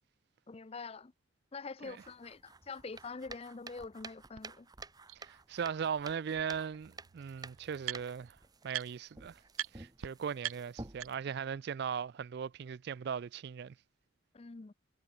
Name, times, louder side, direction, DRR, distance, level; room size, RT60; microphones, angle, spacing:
voice 1, 0.5-1.1 1.5-4.7 14.3-14.7, left 4 dB, 30° left, 0.5 m, -45 dB
sound 1, 1.8-11.2, right 3 dB, 20° right, 1.0 m, -51 dB
sound 2, 4.4-4.5 5.1-5.2 6.5-6.6 6.8-8.3 8.7-9.2 9.5-9.7 10.0-10.1 10.4-11.4, right 12 dB, 85° right, 0.7 m, -41 dB
voice 2, 5.2-8.4 8.6-9.4 9.7-13.7, right 7 dB, 50° right, 0.3 m, -38 dB
head